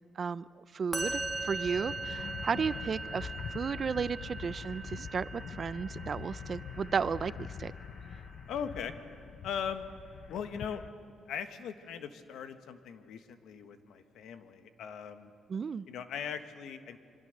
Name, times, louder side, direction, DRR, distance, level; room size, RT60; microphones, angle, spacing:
voice 1, 0.2-7.7 15.5-15.9, right 6 dB, 45° right, 17 dB, 0.5 m, -34 dB
Musical instrument, 0.9-8.2, right 3 dB, 5° right, 2.1 m, -41 dB
sound 1, 1.0-10.9, left 7 dB, 60° left, 0.7 m, -44 dB
voice 2, 8.5-8.9 9.4-9.9 10.3-10.8 11.3-15.3 15.9-17.0, left 7 dB, 80° left, 8 dB, 1.5 m, -39 dB
26.5 x 24.0 x 6.7 m, 2.4 s
cardioid pair, 90°, 0 cm